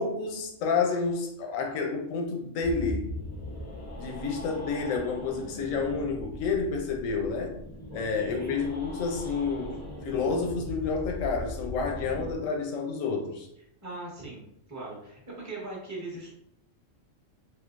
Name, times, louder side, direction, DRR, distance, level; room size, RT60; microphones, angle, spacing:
voice 1, 0.0-3.1 4.0-7.6 7.9-13.5, left 4 dB, 85° left, 2 dB, 1.0 m, -30 dB
sound 1, 2.6-12.3, left 1 dB, 20° left, 0.5 m, -40 dB
voice 2, 7.9-8.6 13.8-16.3, right 2 dB, 15° right, -3 dB, 0.8 m, -40 dB
3.7 x 2.6 x 2.4 m, 0.76 s
omnidirectional pair, 1.3 m